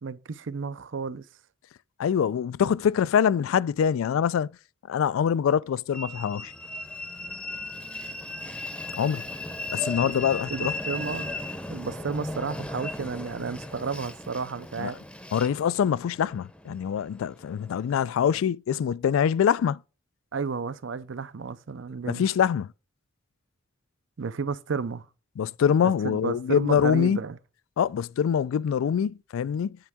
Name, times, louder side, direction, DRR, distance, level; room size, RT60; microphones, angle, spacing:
voice 1, 0.0-1.2 10.5-11.3 11.7-15.0 20.3-22.3 24.2-25.1 25.8-27.4, right 5 dB, 70° right, 0.5 m, -32 dB
voice 2, 2.0-4.5 4.9-6.5 9.0-9.2 9.7-10.7 14.8-14.9 15.3-19.8 22.0-22.7 25.4-27.2 27.8-29.8, left 8 dB, 90° left, 0.3 m, -24 dB
Train, 5.9-18.4, left 2 dB, 5° left, 0.6 m, -37 dB
8.6 x 4.5 x 3.5 m
head